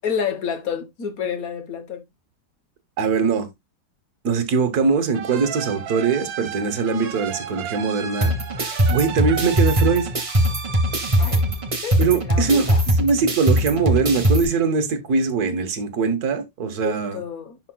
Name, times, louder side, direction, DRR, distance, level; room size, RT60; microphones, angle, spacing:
voice 1, 0.0-2.0 11.2-11.4 11.8-12.8 16.8-17.6, left 7 dB, 55° left, 1.4 m, -29 dB
voice 2, 3.0-3.5 4.2-10.1 12.0-17.2, right 5 dB, 60° right, 1.5 m, -22 dB
sound 1, 5.1-12.6, right 8 dB, 75° right, 1.6 m, -34 dB
sound 2, 8.2-14.4, equal, 25° right, 0.8 m, -21 dB
10.5 x 4.7 x 2.2 m
omnidirectional pair, 2.0 m